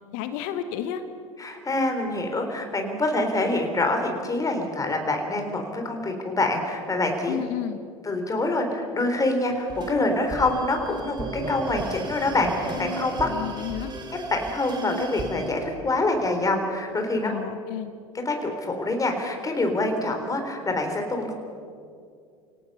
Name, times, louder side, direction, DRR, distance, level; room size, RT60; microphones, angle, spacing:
voice 1, 0.1-1.0 7.3-7.8 13.2-13.9 17.2-17.9, left 10 dB, 60° left, 9 dB, 1.4 m, -31 dB
voice 2, 1.4-7.4 8.0-13.3 14.3-17.3 18.3-21.3, left 2 dB, 20° left, 4 dB, 3.8 m, -26 dB
sound 1, 9.5-15.5, right 2 dB, 25° right, 3.2 m, -35 dB
29.0 x 17.5 x 5.6 m, 2.3 s
hypercardioid pair, 80°, 18 cm